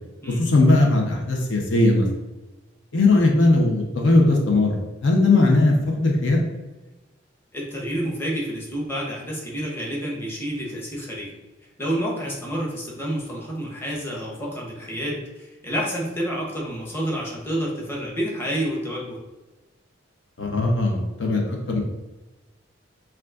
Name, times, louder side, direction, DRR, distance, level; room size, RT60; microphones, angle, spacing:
voice 1, 0.3-2.1 2.9-6.5 20.4-21.8, left 2 dB, 70° left, 0 dB, 0.8 m, -19 dB
voice 2, 7.5-11.4 11.8-19.2, equal, 15° left, -4 dB, 1.0 m, -29 dB
7.1 x 2.4 x 2.4 m, 1.1 s
head